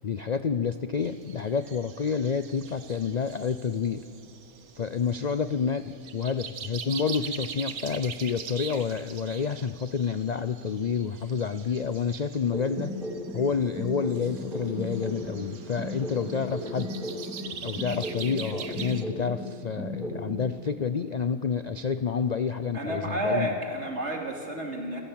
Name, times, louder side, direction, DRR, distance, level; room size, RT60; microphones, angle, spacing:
voice 1, 0.0-4.1 4.8-12.9 13.3-16.9 17.6-23.5, left 6 dB, 60° left, 12 dB, 0.4 m, -29 dB
sound 1, 1.0-19.0, right 7 dB, 75° right, 1.7 m, -43 dB
sound 2, 12.5-15.5 15.8-19.5 19.8-20.5, right 1 dB, ahead, 4.2 m, -35 dB
voice 2, 22.7-25.0, right 1 dB, 50° right, 2 dB, 3.3 m, -30 dB
27.5 x 16.0 x 8.7 m, 2.3 s
omnidirectional pair, 1.6 m